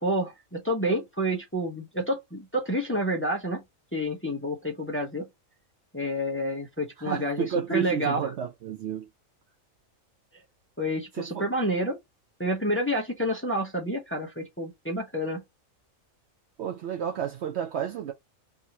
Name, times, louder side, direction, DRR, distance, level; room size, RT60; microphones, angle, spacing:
voice 1, 0.0-3.6 3.9-5.3 5.9-8.3 10.8-12.0 12.4-15.4, equal, 10° left, 0.8 m, -29 dB
voice 2, 7.0-9.1 11.2-11.5 16.6-18.1, right 8 dB, 65° right, 0.8 m, -31 dB
4.7 x 2.8 x 2.8 m
omnidirectional pair, 1.4 m